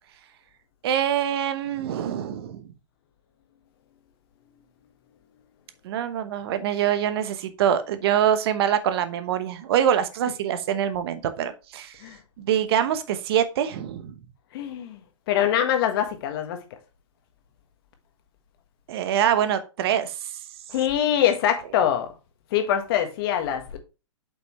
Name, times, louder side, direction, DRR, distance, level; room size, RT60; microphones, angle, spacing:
voice 1, 0.8-2.6 5.8-12.0 12.4-14.1 18.9-20.1, right 9 dB, 50° right, 1.0 m, -24 dB
voice 2, 14.5-15.0 15.3-16.6 20.7-22.1 22.5-23.8, left 10 dB, 45° left, 1.6 m, -23 dB
7.8 x 5.6 x 3.1 m
hypercardioid pair, 120°, 16 cm